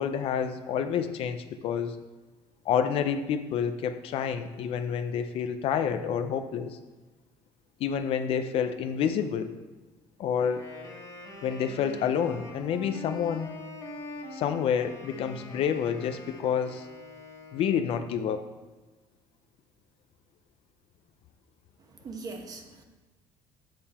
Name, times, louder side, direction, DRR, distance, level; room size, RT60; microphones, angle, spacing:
voice 1, 0.0-2.0 2.7-6.8 7.8-9.5 10.2-10.6 11.4-13.6 14.3-16.9 17.5-18.4, left 8 dB, 55° left, 9 dB, 0.6 m, -28 dB
Wind instrument woodwind instrument, 10.4-18.0, left 2 dB, 30° left, 2.3 m, -44 dB
voice 2, 21.8-22.8, right 3 dB, 35° right, 4 dB, 1.1 m, -41 dB
7.7 x 6.9 x 4.2 m, 1.2 s
cardioid pair, 140°, 12 cm